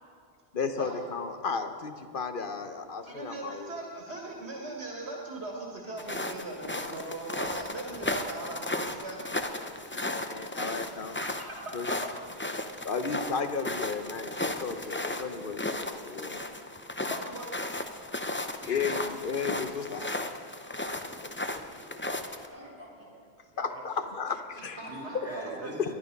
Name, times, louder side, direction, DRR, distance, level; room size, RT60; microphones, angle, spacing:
voice 1, 0.5-3.8 9.9-11.2 11.7-11.9 12.8-16.4 18.7-20.1 23.6-24.3 24.6-24.8 25.8-25.9, left 5 dB, 55° left, 8 dB, 1.1 m, -34 dB
voice 2, 3.0-9.4 9.7-9.8 11.2-11.8 12.0-13.1 17.0-17.5 18.6-19.0 22.6-22.7 24.8-25.7, right 2 dB, 75° right, -1 dB, 2.0 m, -40 dB
sound 1, 6.0-22.5, left 2 dB, 15° left, 0.5 m, -35 dB
voice 3, 17.2-17.5 20.6-23.1 23.5-24.1 24.8-25.9, right 1 dB, 10° right, -4 dB, 3.2 m, -46 dB
20.5 x 11.0 x 5.3 m, 2.2 s
omnidirectional pair, 1.1 m